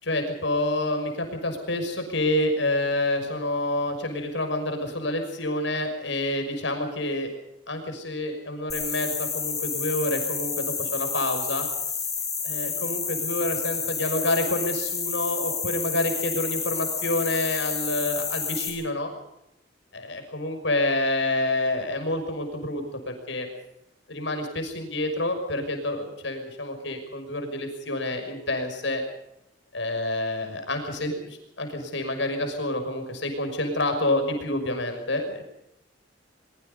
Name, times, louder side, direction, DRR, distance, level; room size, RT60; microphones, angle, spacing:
voice 1, 0.0-7.3 7.7-11.7 12.4-19.1 20.1-23.5 24.1-29.0 29.7-35.4, left 1 dB, 75° left, 5 dB, 6.0 m, -28 dB
sound 1, 8.7-18.7, left 6 dB, 20° left, 6.0 m, -30 dB
24.0 x 22.5 x 5.5 m, 0.81 s
head